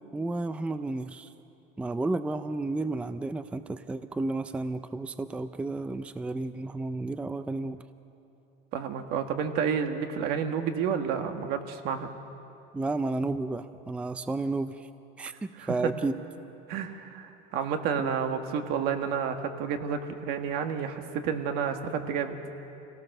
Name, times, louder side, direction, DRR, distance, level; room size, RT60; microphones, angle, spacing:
voice 1, 0.1-1.3 1.8-7.8 12.7-14.9 15.2-16.2 18.0-18.1, right 2 dB, 5° right, 11 dB, 0.4 m, -32 dB
voice 2, 8.7-12.1 15.6-15.7 16.7-22.4, right 7 dB, 65° right, 6 dB, 1.6 m, -30 dB
26.0 x 17.5 x 6.7 m, 2.9 s
cardioid pair, 150°, 18 cm